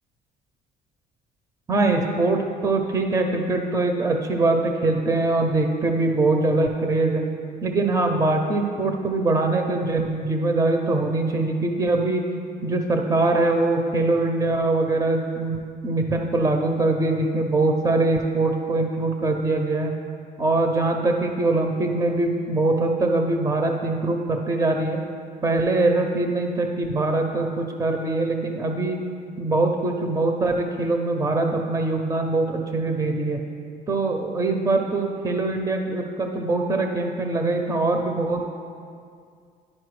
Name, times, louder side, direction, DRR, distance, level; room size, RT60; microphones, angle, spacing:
voice 1, 1.7-7.3 7.6-12.2 12.6-15.6 15.8-19.9 20.4-25.0 25.4-29.0 29.4-33.4 33.9-38.5, right 2 dB, 20° right, 4 dB, 0.5 m, -23 dB
11.0 x 4.4 x 3.1 m, 2.2 s
cardioid pair, 110°, 17 cm